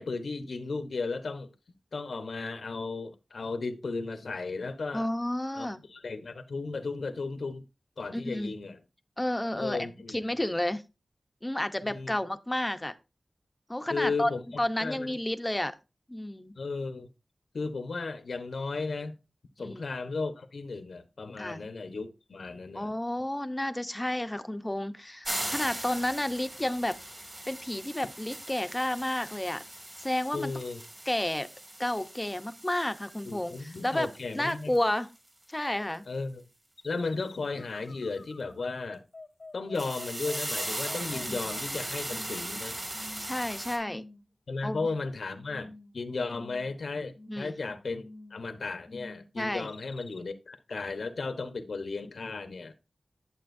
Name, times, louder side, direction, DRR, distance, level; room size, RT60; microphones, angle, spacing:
voice 1, 0.0-1.5 1.9-5.1 5.6-7.6 8.0-8.8 9.5-10.4 11.8-12.2 13.9-14.4 14.8-15.1 16.6-17.1 17.5-19.2 19.6-22.9 30.3-30.8 33.3-34.7 36.1-36.4 36.8-39.0 39.5-42.8 44.5-52.7, left 3 dB, 90° left, 1.1 m, -35 dB
voice 2, 4.9-5.8 8.1-8.5 9.2-10.8 11.4-12.9 13.7-14.3 14.6-15.8 16.1-16.5 19.6-19.8 21.4-21.6 22.7-27.0 27.5-29.6 30.0-30.5 31.1-31.5 31.8-35.1 35.5-36.0 41.1-41.5 43.2-44.0 44.6-44.8 47.3-47.6 49.4-49.7, left 1 dB, 15° left, 0.8 m, -31 dB
sound 1, 25.2-34.8 35.2-35.3 39.7-43.8, right 1 dB, 30° right, 2.8 m, -39 dB
sound 2, 36.8-41.7 42.1-42.6 42.9-43.4 43.8-44.2 44.6-45.2 45.5-46.0 46.3-46.8 47.1-47.6 48.0-48.5 48.9-49.3 49.7-50.2, left 2 dB, 60° left, 0.9 m, -48 dB
11.0 x 7.4 x 2.7 m
wide cardioid pair, 70°, 0 cm